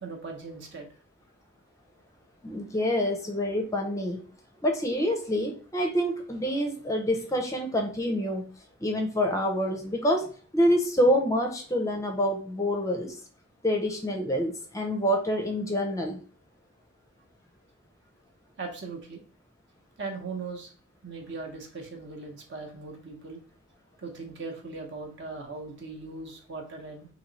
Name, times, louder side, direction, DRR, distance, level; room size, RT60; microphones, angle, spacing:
voice 1, 0.0-0.9 18.6-19.2 20.0-20.7 21.0-23.4 24.0-27.1, right 3 dB, 55° right, 1 dB, 0.8 m, -39 dB
voice 2, 2.4-4.2 4.6-8.5 8.8-10.3 10.5-13.2 13.6-16.2, equal, 15° left, 2 dB, 0.5 m, -27 dB
3.0 x 2.9 x 3.9 m, 0.42 s
head